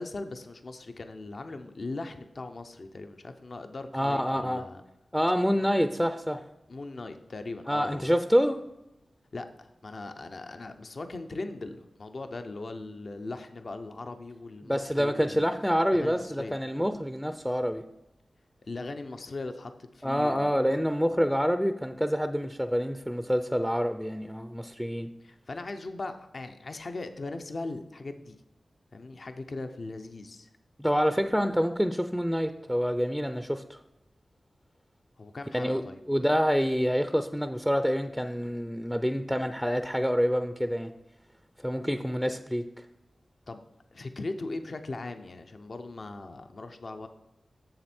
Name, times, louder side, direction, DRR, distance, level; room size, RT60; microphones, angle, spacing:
voice 1, 0.0-4.8 6.7-8.1 9.3-15.4 15.9-16.6 18.7-20.7 25.2-28.4 28.9-30.5 35.2-36.0 43.5-43.6 43.9-47.1, left 2 dB, 60° left, 7 dB, 0.6 m, -39 dB
voice 2, 3.9-4.6 5.1-6.4 7.7-8.6 14.6-17.9 20.0-25.1 30.8-33.8 35.5-40.9 41.6-42.7, equal, ahead, 9 dB, 0.5 m, -27 dB
7.7 x 6.9 x 4.3 m, 0.92 s
cardioid pair, 50°, 0 cm